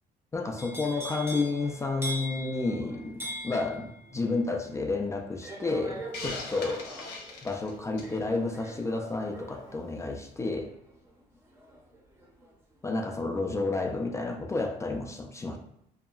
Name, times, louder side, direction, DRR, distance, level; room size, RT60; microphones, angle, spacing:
voice 1, 0.3-7.0 7.4-10.7 12.8-15.6, left 3 dB, 15° left, 2 dB, 0.3 m, -31 dB
sound 1, 0.6-12.5 12.9-13.3, right 1 dB, 15° right, 0.6 m, -42 dB
Hiss, 6.1-8.2, left 3 dB, 75° left, 0.6 m, -40 dB
2.7 x 2.2 x 2.3 m, 0.80 s
cardioid pair, 110°, 17 cm